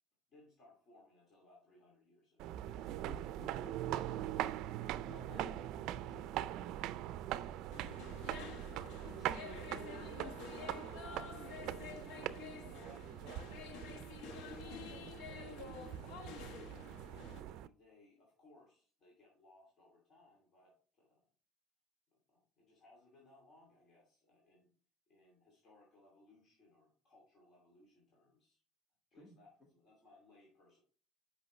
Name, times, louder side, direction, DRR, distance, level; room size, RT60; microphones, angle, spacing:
voice 1, 0.3-3.3 4.8-11.6 11.9-13.8 14.5-15.7 16.0-16.7 17.3-21.3 22.3-24.7 25.1-28.6 29.1-30.8, left 2 dB, 40° left, -4 dB, 2.7 m, -64 dB
sound 1, 2.4-17.7, right 13 dB, 65° right, 0.4 m, -42 dB
voice 2, 3.0-4.5 5.0-5.5 29.2-29.3, left 2 dB, 25° left, 2 dB, 1.3 m, -55 dB
sound 2, 7.7-17.4, left 6 dB, 80° left, 1.0 m, -50 dB
8.3 x 5.6 x 3.2 m, 0.41 s
cardioid pair, 135°, 0 cm